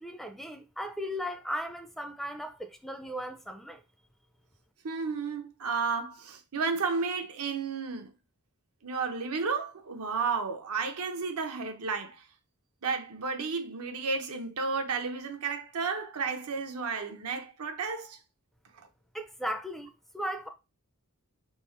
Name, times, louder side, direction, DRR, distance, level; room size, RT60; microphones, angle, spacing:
voice 1, 0.0-3.8 19.1-20.5, equal, ahead, 0.4 m, -37 dB
voice 2, 4.8-8.1 8.8-12.2 12.8-18.2, right 5 dB, 85° right, 0.8 m, -32 dB
3.5 x 3.2 x 4.2 m
head